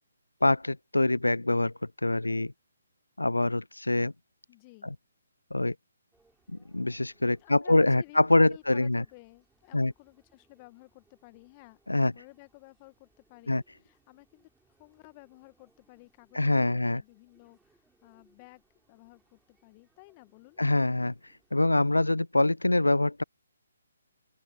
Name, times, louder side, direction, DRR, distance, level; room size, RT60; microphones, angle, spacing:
voice 1, 0.4-2.5 3.2-4.1 5.5-5.8 6.5-9.0 9.7-9.9 11.9-12.1 13.5-13.6 16.3-17.0 20.6-21.1 21.5-23.2, left 2 dB, 85° left, 0.4 m, -25 dB
voice 2, 4.5-4.9 7.4-14.5 14.8-20.6, left 25 dB, 25° left, 1.8 m, -54 dB
sound 1, 6.1-21.9, right 3 dB, 5° right, 4.6 m, -71 dB
open air
figure-of-eight pair, 140°, 0 cm